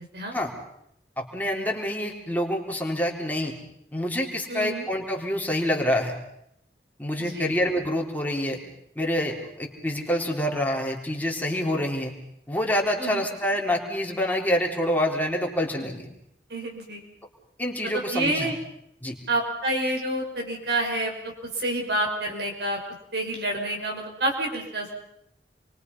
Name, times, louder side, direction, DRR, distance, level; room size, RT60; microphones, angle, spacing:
voice 1, 1.2-3.5 3.9-6.1 7.0-8.6 9.0-12.1 12.5-16.1 17.6-18.5 19.0-19.2, left 1 dB, 10° left, 0 dB, 3.9 m, -27 dB
voice 2, 4.5-4.8 7.2-7.5 13.0-13.2 16.5-17.0 17.9-18.6 19.3-22.8 23.1-24.9, right 1 dB, 70° right, 1 dB, 5.6 m, -28 dB
29.5 x 23.5 x 5.6 m, 0.74 s
head